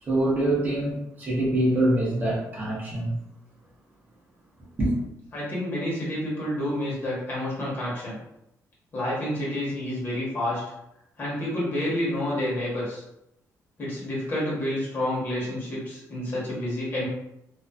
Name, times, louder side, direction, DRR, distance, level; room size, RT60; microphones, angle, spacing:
voice 1, 0.0-3.2 4.8-5.0, right 1 dB, 30° right, -6 dB, 0.6 m, -24 dB
voice 2, 5.3-8.2 8.9-10.6 11.2-13.0 13.8-17.1, left 1 dB, 35° left, -6 dB, 1.0 m, -29 dB
2.5 x 2.3 x 2.3 m, 0.82 s
cardioid pair, 175°, 6 cm